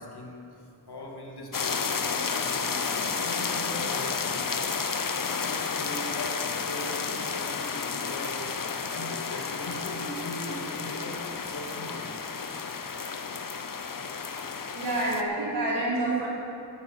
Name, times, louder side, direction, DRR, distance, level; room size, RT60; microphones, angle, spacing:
voice 1, 0.0-4.6 5.4-12.1, left 1 dB, 75° left, 0 dB, 2.2 m, -40 dB
sound 1, 1.5-15.2, left 5 dB, 55° left, 0.9 m, -31 dB
voice 2, 14.7-16.3, right 2 dB, 85° right, -6 dB, 4.0 m, -27 dB
10.5 x 8.9 x 8.7 m, 2.5 s
cardioid pair, 45°, 40 cm